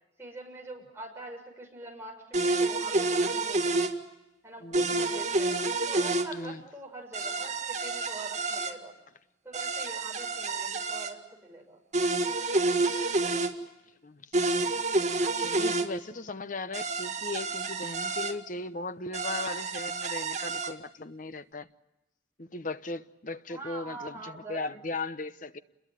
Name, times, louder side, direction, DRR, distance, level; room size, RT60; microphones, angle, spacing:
voice 1, 0.2-3.9 4.4-5.6 5.9-9.0 9.4-11.8 23.5-24.8, right 2 dB, 10° right, 0 dB, 6.4 m, -44 dB
sound 1, 2.3-3.9 4.7-6.3 7.1-8.7 9.5-11.1 11.9-13.5 14.3-15.9 16.7-18.3 19.1-20.7, right 3 dB, 35° right, 2.0 m, -29 dB
voice 2, 4.6-4.9 6.3-6.6 12.8-13.1 14.0-14.3 15.4-21.7 22.4-25.6, left 3 dB, 40° left, 11 dB, 0.9 m, -38 dB
29.5 x 21.5 x 9.1 m, 0.95 s
head